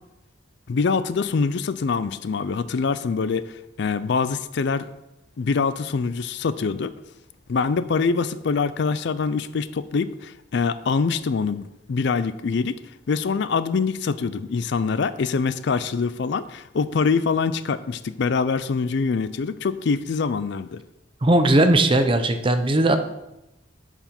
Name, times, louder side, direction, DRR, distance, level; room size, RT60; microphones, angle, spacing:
voice 1, 0.7-4.9 5.4-6.9 7.5-12.8 13.1-20.8, left 5 dB, 60° left, 14 dB, 0.4 m, -24 dB
voice 2, 21.2-23.0, right 1 dB, 25° right, 7 dB, 0.6 m, -18 dB
8.8 x 4.9 x 5.9 m, 0.92 s
head